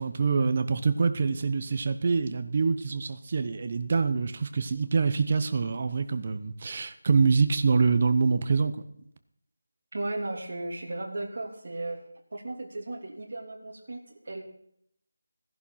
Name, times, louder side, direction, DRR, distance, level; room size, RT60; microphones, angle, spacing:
voice 1, 0.0-8.8, right 4 dB, 30° right, 11 dB, 0.9 m, -25 dB
voice 2, 9.9-12.0 12.3-14.4, right 2 dB, 50° right, 1 dB, 3.2 m, -35 dB
17.0 x 11.0 x 5.8 m, 0.72 s
figure-of-eight pair, 175°, 0 cm